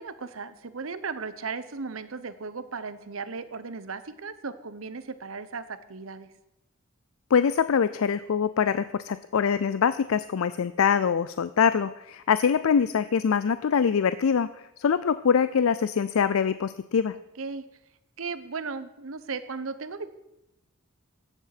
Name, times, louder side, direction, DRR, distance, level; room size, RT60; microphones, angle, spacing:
voice 1, 0.0-6.3 17.4-17.6 18.2-20.1, right 4 dB, 80° right, 13 dB, 0.9 m, -36 dB
voice 2, 7.3-17.1, left 6 dB, 85° left, 14 dB, 0.4 m, -24 dB
14.5 x 9.1 x 5.9 m, 0.89 s
head